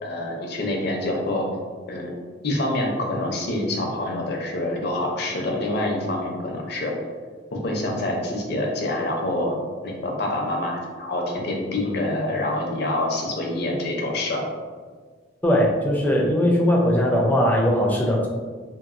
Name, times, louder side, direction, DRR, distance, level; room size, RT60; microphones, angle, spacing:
voice 1, 0.0-1.5 1.9-2.1 2.4-6.9 7.5-9.6 9.8-14.5, left 1 dB, 60° left, 0 dB, 0.6 m, -26 dB
voice 2, 15.4-18.3, equal, 10° left, -2 dB, 0.4 m, -20 dB
2.8 x 2.6 x 2.5 m, 1.5 s
head